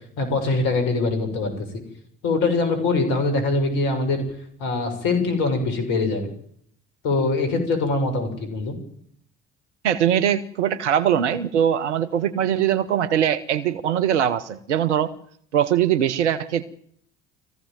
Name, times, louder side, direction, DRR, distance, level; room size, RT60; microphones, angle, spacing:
voice 1, 0.2-1.7 2.2-4.2 4.6-6.2 7.0-8.7, left 3 dB, 70° left, 7 dB, 6.9 m, -23 dB
voice 2, 9.8-15.1 15.5-16.6, right 9 dB, 85° right, 12 dB, 1.0 m, -21 dB
21.0 x 16.0 x 9.1 m, 0.65 s
hypercardioid pair, 55°, 34 cm